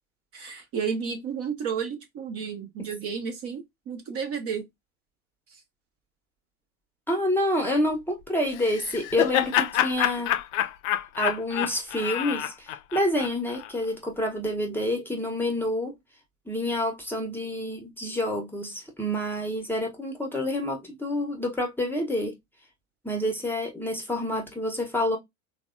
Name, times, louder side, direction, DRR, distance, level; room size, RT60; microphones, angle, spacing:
voice 1, 0.3-4.7, right 6 dB, 35° right, 0.6 m, -32 dB
voice 2, 7.1-10.4 11.2-15.9 16.5-22.3 23.0-25.2, left 1 dB, 5° left, 0.7 m, -28 dB
Laughter, 8.5-13.7, left 12 dB, 60° left, 0.5 m, -27 dB
3.3 x 2.1 x 2.4 m
hypercardioid pair, 80°, 42 cm